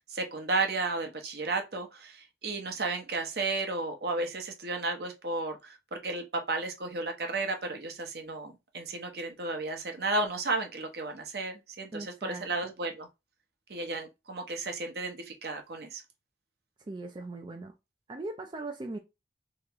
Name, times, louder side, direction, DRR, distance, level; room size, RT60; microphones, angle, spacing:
voice 1, 0.1-13.1 13.7-16.0, right 3 dB, 55° right, 0.8 m, -33 dB
voice 2, 11.9-12.4 16.9-17.7 18.1-19.0, right 2 dB, 25° right, 0.3 m, -39 dB
3.4 x 2.9 x 2.9 m
head